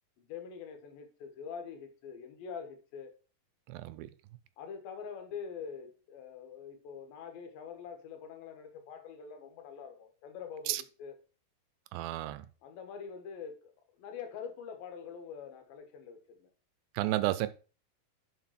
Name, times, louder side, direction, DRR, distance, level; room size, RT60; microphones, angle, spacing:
voice 1, 0.2-3.1 4.6-11.2 12.6-13.6 14.0-16.5, left 6 dB, 75° left, 3.0 m, -45 dB
voice 2, 3.7-4.1 10.7-10.8 11.9-12.4 17.0-17.5, right 16 dB, 80° right, 2.3 m, -32 dB
5.9 x 5.1 x 5.7 m
omnidirectional pair, 4.3 m